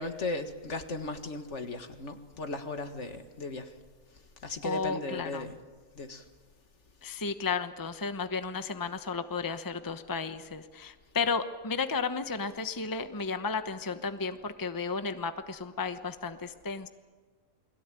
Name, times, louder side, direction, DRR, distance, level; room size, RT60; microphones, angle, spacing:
voice 1, 0.0-3.7 4.4-5.6 6.0-6.2, left 2 dB, 60° left, 7 dB, 2.1 m, -36 dB
voice 2, 4.6-5.5 7.0-16.9, left 5 dB, 15° left, 9 dB, 1.0 m, -33 dB
29.5 x 22.0 x 9.1 m, 1.4 s
omnidirectional pair, 1.4 m